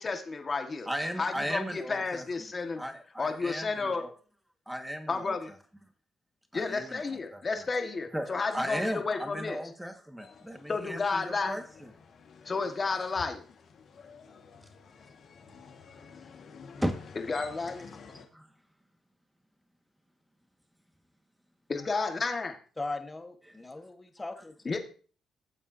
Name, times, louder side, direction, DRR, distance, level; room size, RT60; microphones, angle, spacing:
voice 1, 0.0-0.9 1.2-2.8 3.2-4.0 5.1-5.5 6.5-9.6 10.7-11.6 12.4-13.4 17.3-17.9 21.7-22.6 24.6-24.8, left 4 dB, 35° left, 5 dB, 1.7 m, -32 dB
voice 2, 0.8-2.2 2.8-4.1 4.6-5.4 6.5-7.7 8.1-11.9 15.9-16.0 16.7-16.9 18.3-18.5, equal, 5° right, 5 dB, 1.8 m, -36 dB
sound 1, 10.2-18.3, left 5 dB, 60° left, 1.8 m, -51 dB
voice 3, 22.8-24.8, left 2 dB, 20° left, 6 dB, 1.5 m, -39 dB
15.5 x 7.2 x 2.8 m, 0.41 s
cardioid pair, 90°, 0 cm